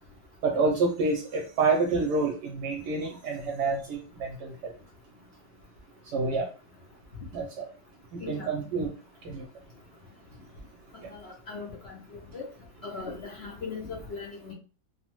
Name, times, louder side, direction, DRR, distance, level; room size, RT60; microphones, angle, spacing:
voice 1, 0.4-4.7 6.1-6.5 7.3-7.7 8.1-8.9 9.2-9.5 11.0-11.1, right 3 dB, 75° right, 1 dB, 1.1 m, -28 dB
voice 2, 8.2-8.5 11.1-12.5 12.8-14.5, left 4 dB, 65° left, -2 dB, 0.6 m, -39 dB
3.0 x 2.0 x 2.9 m, 0.36 s
omnidirectional pair, 1.8 m